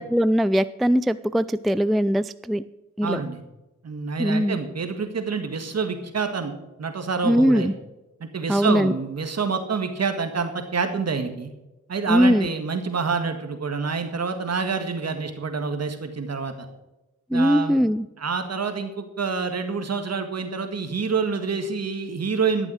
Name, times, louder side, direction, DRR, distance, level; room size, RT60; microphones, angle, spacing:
voice 1, 0.0-2.6 3.0-3.2 4.2-4.6 7.2-7.7 8.5-8.9 12.1-12.5 17.3-18.1, equal, ahead, 15 dB, 0.3 m, -20 dB
voice 2, 3.0-3.4 3.8-6.5 6.8-7.7 8.2-11.5 11.9-16.7 17.3-17.9 18.2-22.7, right 5 dB, 60° right, 7 dB, 1.8 m, -27 dB
12.5 x 7.2 x 6.4 m, 0.98 s
cardioid pair, 50°, 30 cm